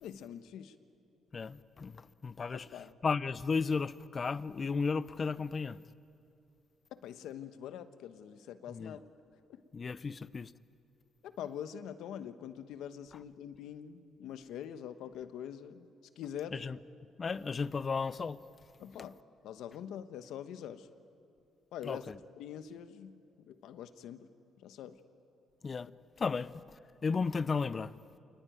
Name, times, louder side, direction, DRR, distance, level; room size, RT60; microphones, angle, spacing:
voice 1, 0.0-0.7 2.5-2.9 6.9-9.0 9.5-9.6 11.2-16.6 18.8-19.2 19.4-20.9 21.7-22.1 22.4-23.2 23.5-24.3 24.6-25.0, left 9 dB, 85° left, 1.1 m, -44 dB
voice 2, 1.3-5.8 8.7-9.0 9.7-10.5 16.5-16.8 17.2-18.4 19.0-19.1 21.8-22.2 25.6-25.9 26.2-26.6 27.0-27.9, left 5 dB, 40° left, 0.7 m, -34 dB
27.5 x 19.5 x 9.3 m
cardioid pair, 90°, 0 cm